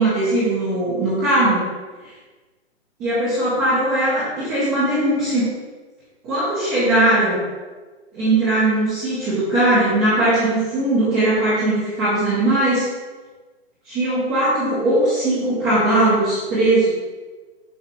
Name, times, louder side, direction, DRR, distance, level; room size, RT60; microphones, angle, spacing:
voice 1, 0.0-1.6 3.0-5.4 6.2-7.4 8.1-12.9 13.9-16.9, right 1 dB, 5° right, -11 dB, 0.5 m, -19 dB
6.8 x 3.2 x 5.9 m, 1.3 s
hypercardioid pair, 165°, 33 cm